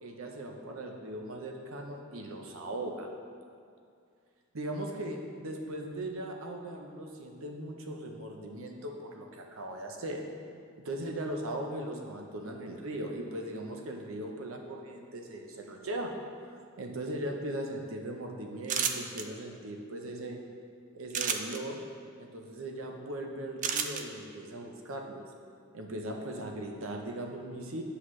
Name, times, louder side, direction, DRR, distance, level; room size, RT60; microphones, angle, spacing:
voice 1, 0.0-3.1 4.5-10.2 10.8-16.1 16.4-20.4 20.9-21.8 22.2-25.3 25.7-27.8, right 1 dB, 85° right, 2 dB, 0.8 m, -39 dB
sound 1, 18.6-19.2 21.1-21.6 23.6-24.0, right 7 dB, 40° right, 0.4 m, -30 dB
8.0 x 5.7 x 3.2 m, 2.3 s
head